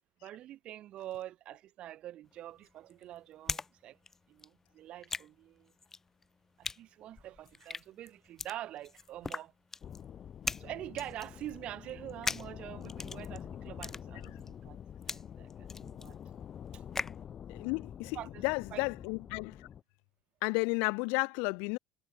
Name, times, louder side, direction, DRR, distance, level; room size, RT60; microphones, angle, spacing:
voice 1, 0.2-4.0 4.3-5.7 6.6-9.5 10.6-14.8 15.0-16.2 16.7-16.8 18.1-18.9, right 13 dB, 40° right, 4.0 m, -45 dB
sound 1, 2.2-3.7 4.0-17.2, left 4 dB, 15° left, 0.9 m, -41 dB
sound 2, 9.8-19.8, left 9 dB, 30° left, 7.1 m, -47 dB
voice 2, 17.5-18.2 18.4-19.7 20.4-21.8, left 35 dB, 75° left, 0.4 m, -32 dB
cardioid pair, 165°, 3 cm